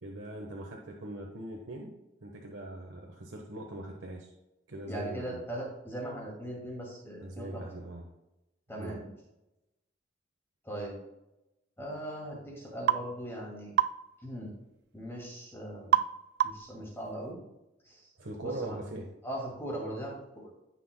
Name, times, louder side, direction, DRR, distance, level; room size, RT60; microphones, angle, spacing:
voice 1, 0.0-1.9 2.2-4.3 4.7-5.4 7.2-8.1 8.7-9.0 18.2-19.1, right 1 dB, 85° right, 1 dB, 1.2 m, -41 dB
voice 2, 4.9-7.7 8.7-9.1 10.6-11.0 11.8-13.7 14.2-14.5 14.9-16.0 16.4-17.4 17.8-18.1 18.4-18.8 19.2-20.5, right 1 dB, 15° left, -3 dB, 2.2 m, -39 dB
sound 1, 12.9-13.1 13.8-14.0 15.9-16.1 16.4-16.7, right 10 dB, 60° right, 0.4 m, -25 dB
15.5 x 5.8 x 2.2 m, 0.94 s
head